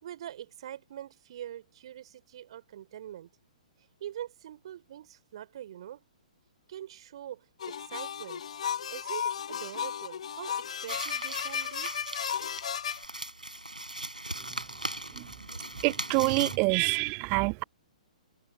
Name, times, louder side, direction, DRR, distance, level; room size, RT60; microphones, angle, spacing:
voice 1, 0.0-3.3 4.0-6.0 6.7-8.5 8.9-10.6 10.8-12.5, right 11 dB, 45° right, 3.5 m, -44 dB
sound 1, 7.6-13.1, left 8 dB, 55° left, 0.6 m, -34 dB
sound 2, 10.9-16.6, right 1 dB, 85° right, 5.9 m, -39 dB
voice 2, 15.8-17.6, right 33 dB, 25° right, 0.4 m, -26 dB
figure-of-eight pair, 120°, 4 cm